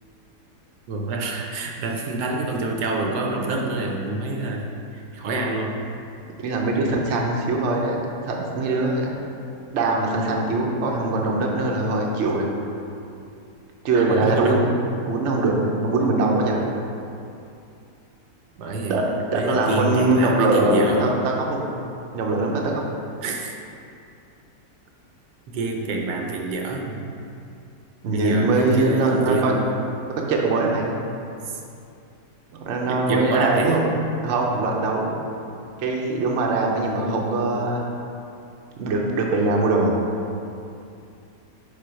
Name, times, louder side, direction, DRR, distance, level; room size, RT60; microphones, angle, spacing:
voice 1, 0.9-5.8 13.9-14.6 18.6-19.0 19.3-21.1 23.2-23.5 25.5-27.0 28.1-29.7 31.5-31.6 32.9-33.9, right 2 dB, 80° right, 1 dB, 1.2 m, -27 dB
voice 2, 6.4-8.0 8.2-9.1 9.7-12.5 13.8-14.7 15.0-16.6 18.9-21.7 22.1-22.8 28.0-29.5 30.3-31.0 32.6-33.8 34.2-35.2 35.8-37.8 38.8-40.0, right 2 dB, 55° right, -1 dB, 0.8 m, -22 dB
5.0 x 3.8 x 5.6 m, 2.6 s
omnidirectional pair, 1.8 m